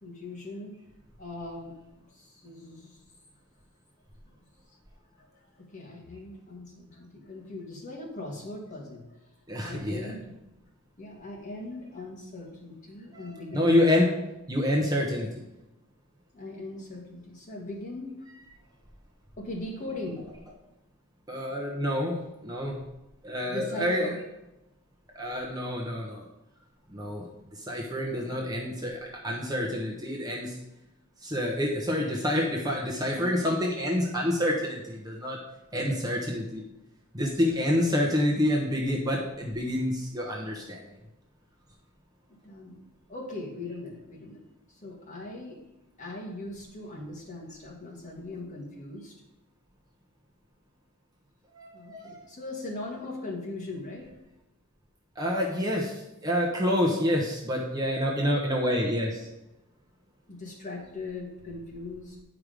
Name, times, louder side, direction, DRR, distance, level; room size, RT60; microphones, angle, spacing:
voice 1, 0.0-0.7 1.2-3.0 4.3-4.4 4.7-4.8 5.1-9.0 9.6-10.4 11.0-13.9 16.3-18.1 19.4-20.2 23.5-24.2 37.3-37.6 42.3-42.8 43.1-44.4 44.7-45.6 46.0-49.1 51.7-54.1 60.3-62.2, left 2 dB, 35° left, -2 dB, 1.8 m, -40 dB
voice 2, 9.5-10.1 13.1-14.1 14.5-15.3 21.3-22.2 22.4-22.8 23.2-24.1 25.2-26.2 26.9-27.2 27.7-30.6 31.2-35.4 35.7-36.6 37.1-40.8 51.6-52.2 55.2-55.9 56.2-59.3, left 1 dB, 15° right, -2 dB, 0.9 m, -27 dB
9.4 x 4.9 x 5.0 m, 0.94 s
head